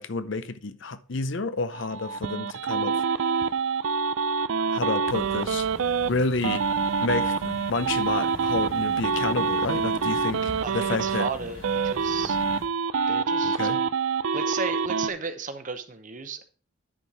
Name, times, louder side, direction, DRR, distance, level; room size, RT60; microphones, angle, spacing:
voice 1, 0.0-3.0 4.7-5.7 6.1-6.6 7.0-11.3 13.4-13.8, left 3 dB, 60° left, 0.6 m, -30 dB
sound 1, 1.7-6.1 6.4-11.3 11.6-15.1, right 5 dB, 75° right, 0.4 m, -26 dB
sound 2, 5.0-12.7, equal, 75° left, 5.2 m, -42 dB
voice 2, 10.6-12.4 13.1-13.7 14.3-16.4, right 4 dB, 40° right, 0.8 m, -34 dB
10.0 x 4.5 x 4.7 m
head